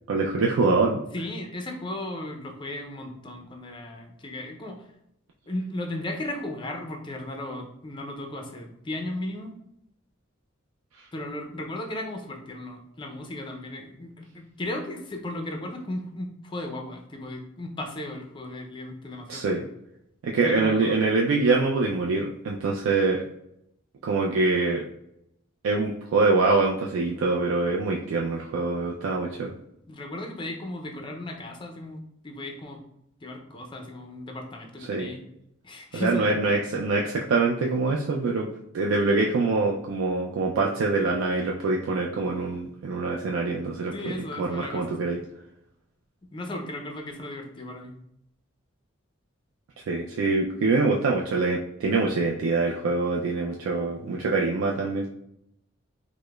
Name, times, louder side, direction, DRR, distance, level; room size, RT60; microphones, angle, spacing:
voice 1, 0.1-1.0 19.3-19.6 20.2-23.2 24.0-24.8 25.6-29.5 34.9-35.1 35.9-38.5 38.7-45.2 49.9-55.1, right 3 dB, 80° right, -1 dB, 0.3 m, -24 dB
voice 2, 1.1-4.8 5.5-9.5 11.1-19.6 20.4-21.0 29.9-32.8 33.2-35.2 35.6-36.5 43.9-45.1 46.3-48.0, left 1 dB, 25° left, 3 dB, 0.4 m, -35 dB
4.8 x 2.0 x 2.2 m, 0.78 s
head